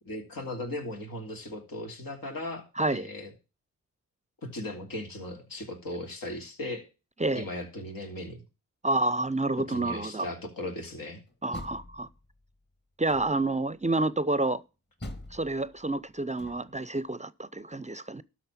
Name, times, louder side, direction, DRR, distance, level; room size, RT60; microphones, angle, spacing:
voice 1, 0.0-3.3 4.4-6.9 7.3-8.4 9.7-11.2, left 1 dB, 80° left, 2.7 m, -37 dB
voice 2, 2.8-3.1 7.2-7.4 8.8-10.3 11.4-12.1 13.0-14.6 15.3-18.2, right 2 dB, 20° right, 0.5 m, -29 dB
Door, 11.3-12.5 13.1-13.6 15.0-16.9, left 1 dB, 30° left, 1.9 m, -45 dB
12.5 x 4.4 x 7.3 m
cardioid pair, 55°, 34 cm